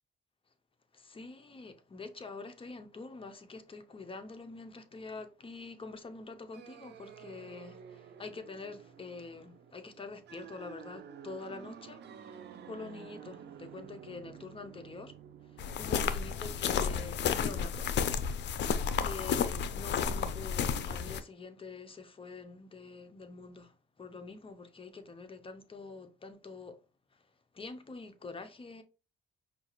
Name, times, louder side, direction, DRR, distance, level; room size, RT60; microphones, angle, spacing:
voice 1, 0.9-15.1 15.5-17.9 19.0-26.8 27.5-28.8, left 4 dB, 25° left, 0.7 m, -46 dB
sound 1, 6.5-17.0, right 8 dB, 60° right, 0.5 m, -51 dB
sound 2, 15.6-21.2, left 7 dB, 60° left, 0.5 m, -32 dB
5.1 x 2.4 x 2.9 m
cardioid pair, 90°, 20 cm